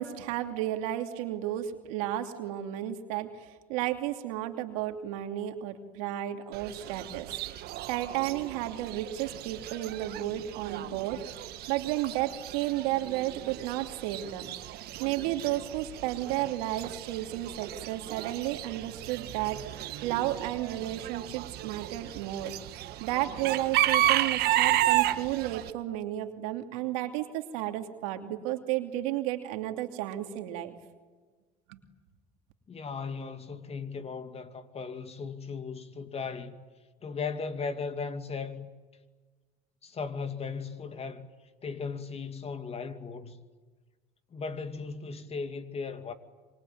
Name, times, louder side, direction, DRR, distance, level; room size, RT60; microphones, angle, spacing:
voice 1, 0.0-7.4 7.9-11.2 11.7-14.5 15.0-19.6 20.0-22.5 23.0-30.7 31.7-31.8, right 14 dB, 90° right, 2.8 m, -32 dB
Chicken rooster / Bird, 6.5-25.7, right 14 dB, 70° right, 1.6 m, -33 dB
voice 2, 32.7-36.5 37.0-38.7 39.8-41.3 41.6-43.4 44.3-46.1, left 5 dB, 35° left, 2.5 m, -37 dB
26.0 x 24.5 x 9.4 m
supercardioid pair, 90°, 17 cm